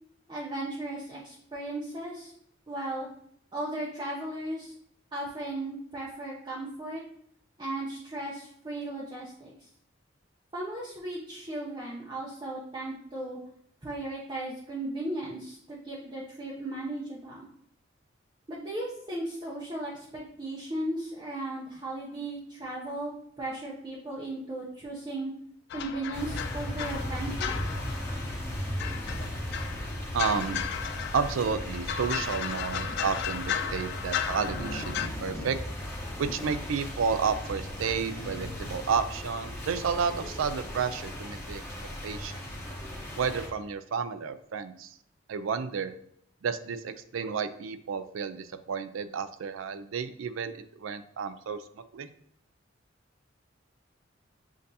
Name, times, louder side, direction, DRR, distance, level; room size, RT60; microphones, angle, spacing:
voice 1, 0.3-2.3 2.7-3.1 3.5-4.7 5.1-7.0 7.6-9.5 10.5-13.4 13.8-17.5 18.5-25.3 25.7-27.5, right 1 dB, 25° right, -5 dB, 0.7 m, -36 dB
sound 1, 25.7-35.1, left 8 dB, 60° left, 0.3 m, -35 dB
sound 2, 26.1-43.5, left 1 dB, 10° left, 1.0 m, -37 dB
voice 2, 30.1-30.6 31.1-35.6 36.2-41.6 42.0-42.4 43.2-44.9 45.3-45.9 46.4-50.5 50.8-51.6 51.9-52.1, right 6 dB, 85° right, 11 dB, 0.4 m, -31 dB
7.3 x 2.6 x 2.7 m, 0.69 s
head